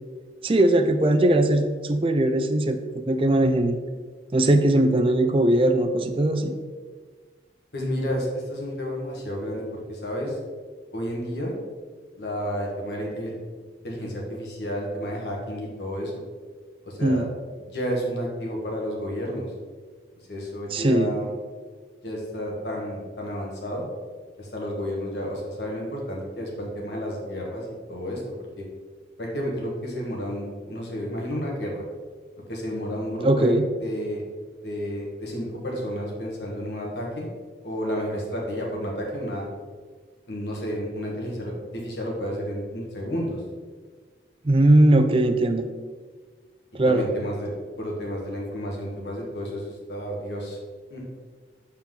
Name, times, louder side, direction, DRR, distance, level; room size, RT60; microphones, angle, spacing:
voice 1, 0.4-3.8 4.3-6.5 17.0-17.3 20.7-21.1 33.2-33.6 44.4-45.7 46.7-47.0, right 1 dB, 30° right, 7 dB, 0.4 m, -20 dB
voice 2, 7.7-10.4 10.9-11.6 12.1-13.3 13.8-16.2 16.8-17.3 17.7-19.5 20.3-21.3 22.0-23.8 24.4-28.2 28.6-28.7 29.2-31.8 32.5-34.2 34.6-37.3 37.6-39.5 40.3-43.4 46.8-50.6 50.9-51.0, equal, 80° left, -1 dB, 1.7 m, -31 dB
7.4 x 4.4 x 3.8 m, 1.5 s
head